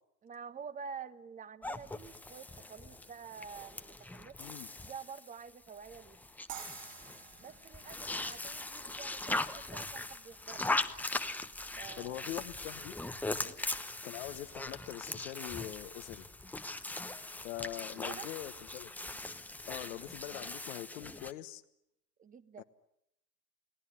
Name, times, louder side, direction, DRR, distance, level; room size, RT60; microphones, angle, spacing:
voice 1, 0.2-4.5 4.8-6.2 7.4-10.7 11.8-12.3 13.4-13.6 17.9-18.3 19.8-20.0 22.2-22.6, right 6 dB, 15° right, 15 dB, 1.2 m, -48 dB
sound 1, 1.6-21.3, left 2 dB, 5° left, 1.0 m, -40 dB
sound 2, 6.5-9.6, right 13 dB, 60° right, 1.3 m, -51 dB
voice 2, 12.0-13.0 14.0-16.2 17.4-18.9 19.7-21.6 22.6-22.7, left 15 dB, 50° left, 8 dB, 1.3 m, -43 dB
29.5 x 18.5 x 9.9 m, 0.83 s
hypercardioid pair, 105°, 50 cm